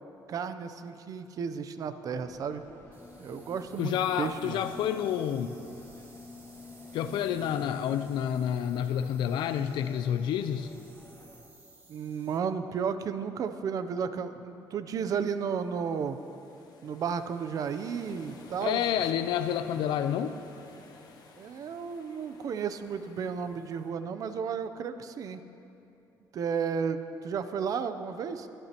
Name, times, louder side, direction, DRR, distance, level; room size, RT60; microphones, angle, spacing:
voice 1, 0.3-2.6 3.2-4.7 11.9-16.2 16.8-18.8 21.4-25.4 26.3-28.5, right 6 dB, 50° right, 10 dB, 0.6 m, -33 dB
sound 1, 2.1-11.4, left 2 dB, 30° left, 1.6 m, -50 dB
sound 2, 2.9-12.4, right 3 dB, 25° right, 1.7 m, -58 dB
voice 2, 3.8-5.5 6.9-10.7 18.6-20.3, left 9 dB, 75° left, 9 dB, 0.5 m, -29 dB
sound 3, 15.3-23.9, left 4 dB, 55° left, 1.4 m, -54 dB
22.0 x 12.5 x 3.0 m, 2.8 s
cardioid pair, 145°, 8 cm